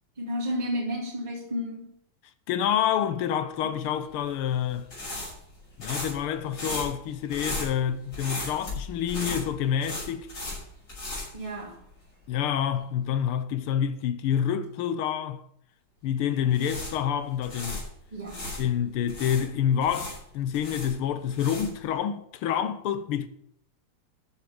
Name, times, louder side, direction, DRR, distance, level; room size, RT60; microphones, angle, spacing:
voice 1, 0.2-1.9 11.3-11.8 18.1-18.5, equal, 20° right, 2.6 m, -32 dB
voice 2, 2.5-4.9 5.8-10.4 12.3-15.4 16.0-17.8 18.6-23.3, left 9 dB, 90° left, 1.8 m, -28 dB
sound 1, 4.0-12.1 12.4-12.6 16.3-18.6 19.1-21.9, left 2 dB, 45° left, 6.4 m, -37 dB
13.5 x 7.3 x 5.1 m
omnidirectional pair, 2.3 m